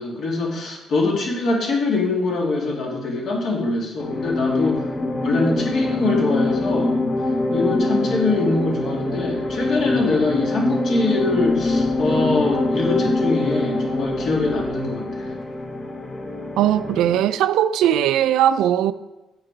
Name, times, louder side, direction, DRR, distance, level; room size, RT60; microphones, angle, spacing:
voice 1, 0.0-4.9 5.2-7.0 7.5-15.4, left 3 dB, 55° left, 2.3 m, -23 dB
sound 1, 4.0-17.3, left 2 dB, 25° left, 0.9 m, -24 dB
voice 2, 16.6-18.9, right 11 dB, 90° right, 0.4 m, -19 dB
8.6 x 6.6 x 4.6 m
cardioid pair, 155°, 0 cm